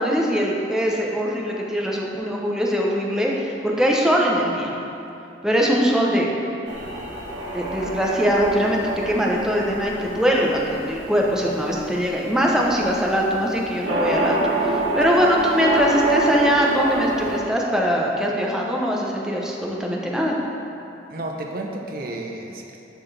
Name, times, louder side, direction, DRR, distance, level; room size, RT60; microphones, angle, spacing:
voice 1, 0.0-4.7 5.4-6.3 7.5-8.8 9.1-14.7 15.0-20.4, equal, 5° right, -2 dB, 0.7 m, -22 dB
sound 1, 6.7-17.4, right 1 dB, 70° right, 1.1 m, -27 dB
voice 2, 14.6-15.0 21.1-22.8, right 2 dB, 50° right, 0 dB, 0.7 m, -32 dB
11.5 x 4.3 x 3.3 m, 2.8 s
head